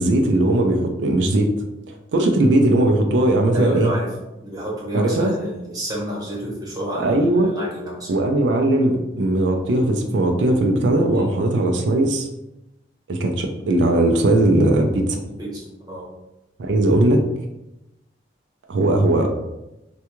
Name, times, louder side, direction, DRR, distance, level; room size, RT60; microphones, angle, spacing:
voice 1, 0.0-1.5 1.9-3.9 4.9-5.3 7.0-7.5 8.1-12.3 13.1-15.2 16.6-17.2 18.7-19.3, right 1 dB, 75° right, 3 dB, 0.4 m, -18 dB
voice 2, 3.5-4.1 4.4-8.1 11.1-11.3 15.2-16.1, equal, 20° right, -6 dB, 1.0 m, -30 dB
3.5 x 2.3 x 2.9 m, 0.92 s
head